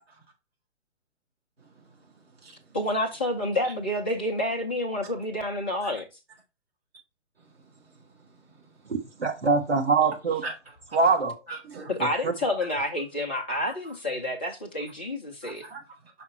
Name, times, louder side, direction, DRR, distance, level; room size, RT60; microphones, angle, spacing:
voice 1, 1.6-2.8 3.6-3.7 5.8-5.9 7.4-8.9 10.4-10.5 10.9-11.0 11.5-11.9 13.8-13.9 15.4-16.1, right 3 dB, 55° right, 3.5 m, -44 dB
voice 2, 2.7-6.1 11.9-15.7, left 1 dB, 10° left, 0.4 m, -29 dB
voice 3, 8.9-10.4 10.9-11.3 12.0-12.1, right 4 dB, 75° right, 1.6 m, -23 dB
5.6 x 4.9 x 4.4 m
figure-of-eight pair, 130°, 35 cm